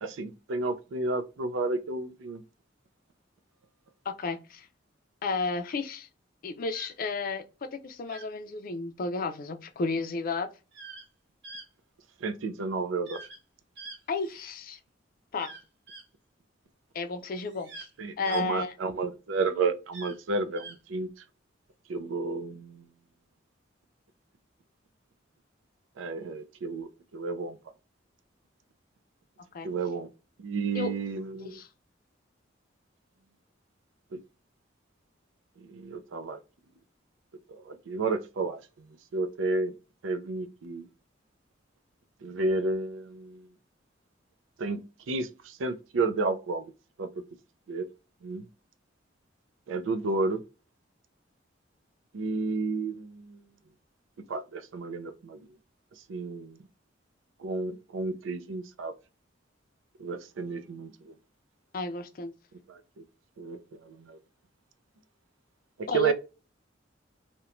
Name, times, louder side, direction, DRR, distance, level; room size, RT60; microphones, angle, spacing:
voice 1, 0.0-2.4 12.2-13.2 18.0-21.1 21.9-22.9 26.0-27.6 29.6-30.1 30.4-31.6 35.7-36.4 37.6-38.6 39.1-39.7 40.0-40.9 42.2-43.5 44.6-44.8 45.1-46.6 47.0-47.1 47.7-47.8 48.2-48.4 49.7-50.4 52.1-53.4 54.3-55.4 56.1-56.6 57.4-58.9 60.0-61.1 62.7-62.8 63.4-63.6 63.9-64.2 65.9-66.1, right 3 dB, 90° right, 0.4 m, -31 dB
voice 2, 4.1-4.7 5.2-6.1 6.4-10.5 14.1-14.8 15.3-15.5 16.9-17.9 18.2-18.7 29.5-29.7 30.7-30.9 31.3-31.7 61.7-62.3 65.9-66.1, left 3 dB, 50° left, 0.4 m, -32 dB
sound 1, 6.7-6.9 8.1-8.3 10.7-11.1 11.4-11.7 13.1-13.4 13.8-14.6 15.4-16.0 17.4-17.9 18.2-18.4 19.9-20.2 20.6-20.8, right 3 dB, 60° right, 0.8 m, -45 dB
2.9 x 2.1 x 2.4 m
head